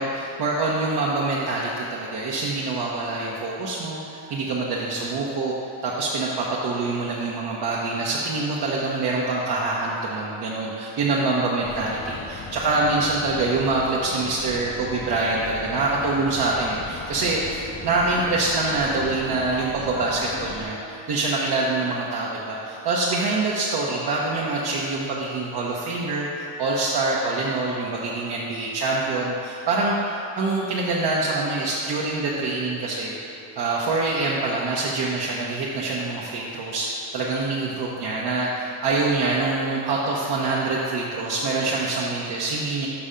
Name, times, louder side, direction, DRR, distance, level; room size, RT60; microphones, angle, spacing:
voice 1, 0.0-5.6 5.8-33.2 33.6-42.9, right 3 dB, 50° right, -5 dB, 0.9 m, -25 dB
sound 1, 11.6-20.7, left 4 dB, 25° left, 0.3 m, -38 dB
6.0 x 5.6 x 5.1 m, 2.9 s
cardioid pair, 125°, 49 cm